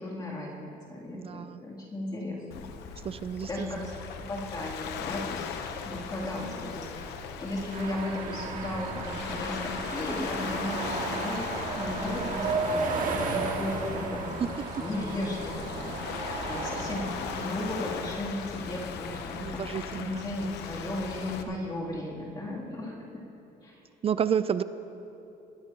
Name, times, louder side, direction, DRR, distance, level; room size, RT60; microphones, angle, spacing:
voice 1, 0.0-2.7 3.5-7.0 7.3-14.5 14.8-23.2 23.6-23.8, left 1 dB, 25° left, -6 dB, 3.0 m, -36 dB
voice 2, 1.1-1.6 3.0-3.9 19.4-20.3 21.5-22.0 24.0-24.6, right 8 dB, 35° right, 14 dB, 0.4 m, -31 dB
Waves surf, 2.5-21.4, left 6 dB, 85° left, 0.9 m, -38 dB
sound 1, 7.7-18.0, right 3 dB, 50° right, 2.0 m, -34 dB
21.5 x 13.5 x 3.0 m, 2.9 s
cardioid pair, 110°, 17 cm